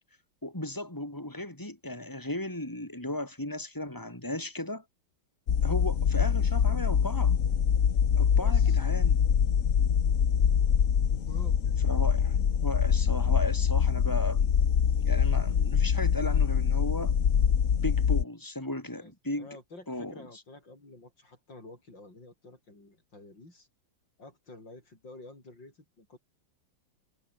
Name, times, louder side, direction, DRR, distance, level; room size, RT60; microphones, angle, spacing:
voice 1, 0.4-4.8 5.6-7.3 8.2-9.3 11.8-14.5 15.0-17.1 17.8-19.5 19.9-20.2, left 1 dB, 10° left, 5.3 m, -36 dB
sound 1, 5.5-18.2, left 7 dB, 50° left, 1.5 m, -24 dB
voice 2, 8.4-8.8 11.3-11.8 19.0-23.7 24.2-26.2, left 2 dB, 80° left, 8.3 m, -50 dB
omnidirectional pair, 2.0 m